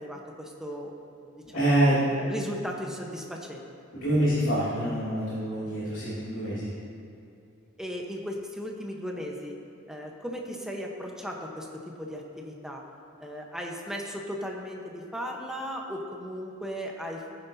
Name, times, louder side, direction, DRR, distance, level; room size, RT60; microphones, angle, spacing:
voice 1, 0.0-1.7 2.2-3.6 7.8-9.6 9.9-12.8 13.2-17.3, equal, 5° right, 0 dB, 1.0 m, -36 dB
voice 2, 1.4-2.1 3.9-6.7, right 1 dB, 65° left, -12 dB, 2.8 m, -26 dB
17.0 x 9.6 x 2.8 m, 2.6 s
head